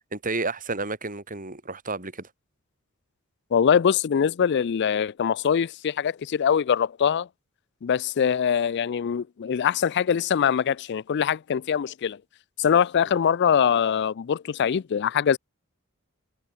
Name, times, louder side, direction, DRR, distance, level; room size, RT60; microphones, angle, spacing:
voice 1, 0.1-2.3, right 3 dB, 40° right, 5.5 m, -31 dB
voice 2, 3.5-7.3 7.8-12.2 12.6-15.4, left 7 dB, 55° left, 0.4 m, -23 dB
head